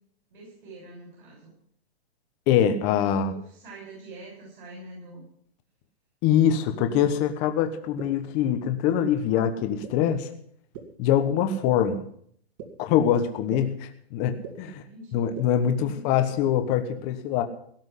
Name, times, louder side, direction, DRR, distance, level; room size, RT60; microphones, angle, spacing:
voice 1, 0.3-1.5 3.1-5.2 14.7-15.3 15.7-16.1, right 2 dB, 55° right, -2 dB, 6.4 m, -45 dB
voice 2, 2.5-3.3 6.2-10.3 11.0-12.0 12.8-14.8 15.1-17.4, left 9 dB, 20° left, 8 dB, 1.1 m, -24 dB
sound 1, 7.0-7.1 8.0-8.1 8.9-9.0 9.8-9.9 10.7-10.8 11.7-11.8 12.6-12.7 13.5-13.6 14.4-14.5 15.4-15.5, right 9 dB, 35° right, 2.5 m, -37 dB
17.0 x 6.1 x 9.9 m, 0.64 s
hypercardioid pair, 165°, 31 cm